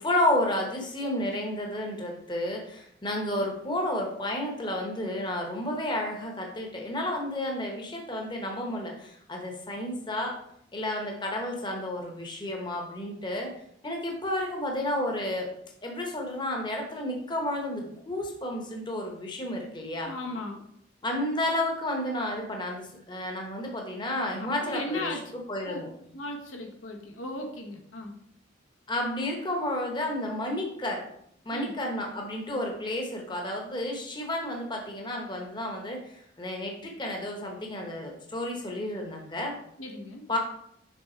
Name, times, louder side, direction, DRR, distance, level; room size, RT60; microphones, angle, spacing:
voice 1, 0.0-10.4 10.7-13.5 13.8-15.5 15.8-20.1 21.0-25.1 25.5-25.9 28.9-31.0 31.4-39.5 40.3-40.4, left 1 dB, 25° left, 1 dB, 0.9 m, -31 dB
voice 2, 20.0-20.6 24.4-25.3 25.6-25.8 26.1-28.2 31.5-31.7 39.8-40.2, left 2 dB, 90° left, 1 dB, 1.2 m, -36 dB
6.3 x 3.6 x 4.3 m, 0.72 s
head